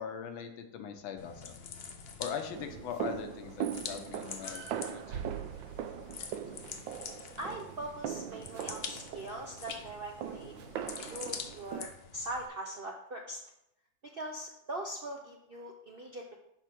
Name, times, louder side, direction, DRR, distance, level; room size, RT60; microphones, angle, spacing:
voice 1, 0.0-1.6 2.2-5.2, left 7 dB, 85° left, 6 dB, 1.7 m, -41 dB
sound 1, 1.2-12.5, left 5 dB, 65° left, 0.6 m, -46 dB
sound 2, 2.5-11.9, right 9 dB, 80° right, 1.3 m, -40 dB
voice 2, 7.4-11.9 12.1-13.4 14.1-16.3, right 1 dB, 55° right, 1 dB, 0.6 m, -41 dB
10.5 x 3.7 x 6.0 m, 0.80 s
omnidirectional pair, 2.1 m